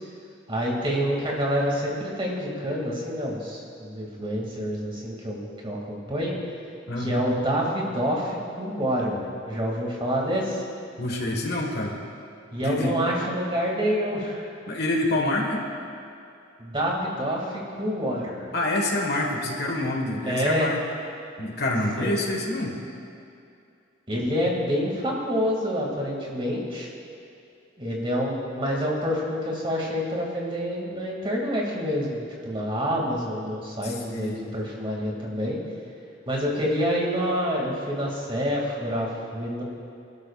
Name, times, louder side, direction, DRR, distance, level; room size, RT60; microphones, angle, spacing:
voice 1, 0.5-6.4 7.0-10.6 12.5-14.4 16.6-18.5 20.2-20.7 21.9-22.1 24.1-26.9 27.8-35.6 36.3-39.6, equal, 25° right, -2 dB, 2.5 m, -27 dB
voice 2, 6.9-7.3 11.0-12.0 12.6-12.9 14.7-15.6 18.5-20.8 21.4-22.7 33.8-34.4, left 1 dB, 55° left, 1 dB, 1.7 m, -27 dB
23.5 x 13.0 x 2.5 m, 2.5 s
head